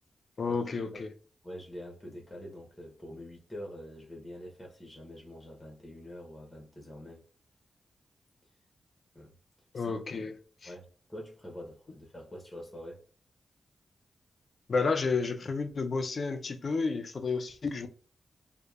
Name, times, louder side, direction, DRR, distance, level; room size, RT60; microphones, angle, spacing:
voice 1, 0.4-1.1 9.7-10.3 10.6-10.7 14.7-17.9, left 4 dB, 60° left, 0.4 m, -31 dB
voice 2, 1.4-7.2 9.1-9.3 9.7-9.9 10.6-13.0, equal, 15° left, 0.9 m, -45 dB
2.8 x 2.0 x 2.3 m
cardioid pair, 60°, 0 cm